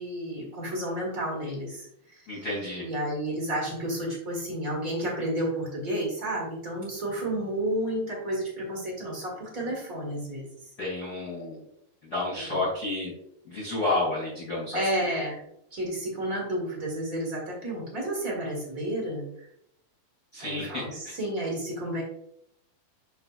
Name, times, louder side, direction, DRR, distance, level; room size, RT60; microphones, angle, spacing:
voice 1, 0.0-1.9 2.8-10.4 12.5-12.6 14.7-15.4 15.7-19.2 20.4-22.0, right 1 dB, 35° right, -3 dB, 1.4 m, -31 dB
voice 2, 2.3-2.9 10.8-11.6 12.0-13.1 13.4-14.9 20.3-21.2, left 2 dB, 30° left, -5 dB, 2.3 m, -31 dB
7.1 x 5.4 x 2.5 m, 0.76 s
omnidirectional pair, 4.3 m